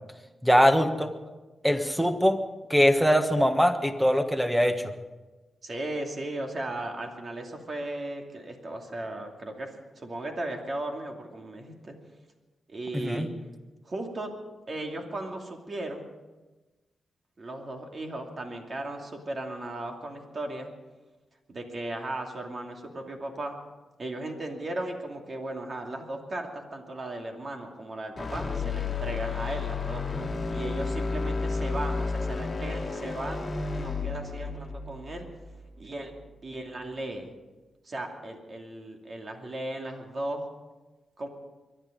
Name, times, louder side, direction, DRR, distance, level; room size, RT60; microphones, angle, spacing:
voice 1, 0.4-1.1 1.6-2.4 2.7-4.9 12.9-13.3, equal, ahead, 7 dB, 1.4 m, -22 dB
voice 2, 5.6-9.7 10.0-11.9 12.7-13.3 13.8-14.3 14.7-16.1 17.4-20.7 21.5-23.5 24.0-30.0 30.5-35.3 35.8-36.1 36.4-37.3 37.8-40.4 41.2-41.3, right 1 dB, 40° right, 2 dB, 2.7 m, -36 dB
sound 1, 28.2-36.3, left 4 dB, 35° left, 1.8 m, -32 dB
23.0 x 11.0 x 5.2 m, 1.2 s
cardioid pair, 100°, 0 cm